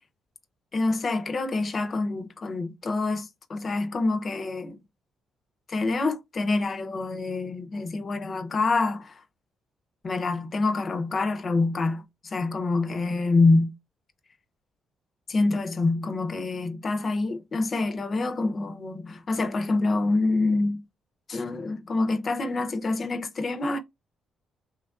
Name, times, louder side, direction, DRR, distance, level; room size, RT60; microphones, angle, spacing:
voice 1, 0.7-4.8 5.7-9.2 10.0-13.7 15.3-20.8 21.3-23.8, left 3 dB, 40° left, 0.6 m, -26 dB
3.1 x 2.4 x 2.3 m
cardioid pair, 90°, 0 cm